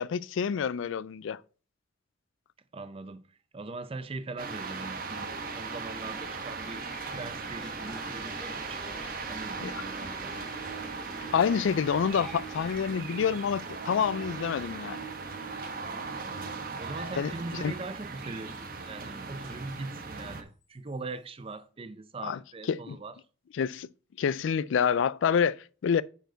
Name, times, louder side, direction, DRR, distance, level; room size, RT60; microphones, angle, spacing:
voice 1, 0.0-1.4 9.6-9.8 11.3-15.0 17.2-17.3 17.6-17.7 22.2-22.4 22.7-23.0 23.5-23.9 24.2-26.0, left 7 dB, 85° left, 0.3 m, -27 dB
voice 2, 2.7-3.2 3.5-10.4 16.8-23.2, right 3 dB, 30° right, 0.6 m, -41 dB
sound 1, 4.4-20.4, right 4 dB, 50° right, 1.0 m, -38 dB
sound 2, 6.1-12.7, equal, 5° left, 1.8 m, -48 dB
sound 3, 8.8-18.5 20.9-21.0, right 13 dB, 50° left, 4.5 m, -49 dB
9.2 x 4.5 x 3.9 m
head